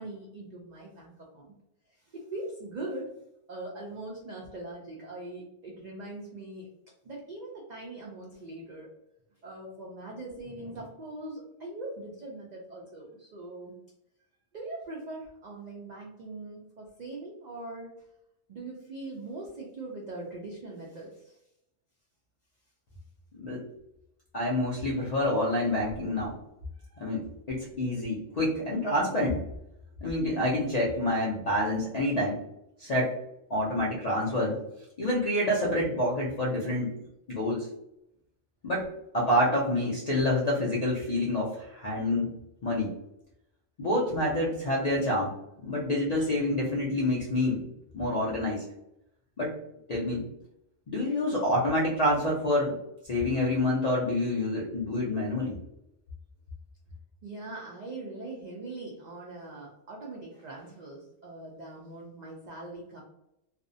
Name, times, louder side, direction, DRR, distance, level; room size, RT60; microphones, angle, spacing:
voice 1, 0.0-1.5 1.9-3.1 3.5-6.7 7.0-8.9 9.4-13.8 14.5-18.1 18.5-21.4 26.8-27.1 57.2-63.0, right 2 dB, 80° right, -2 dB, 0.3 m, -41 dB
voice 2, 24.3-26.4 27.0-29.4 30.0-32.4 32.8-33.1 33.5-34.6 35.0-36.9 37.3-37.7 38.6-38.9 39.1-42.3 42.6-42.9 43.8-45.3 45.6-47.7 47.9-48.6 49.4-49.6 49.9-50.2 50.9-52.8 53.0-55.6, left 1 dB, 65° left, -5 dB, 0.4 m, -27 dB
2.5 x 2.0 x 2.5 m, 0.84 s
omnidirectional pair, 1.3 m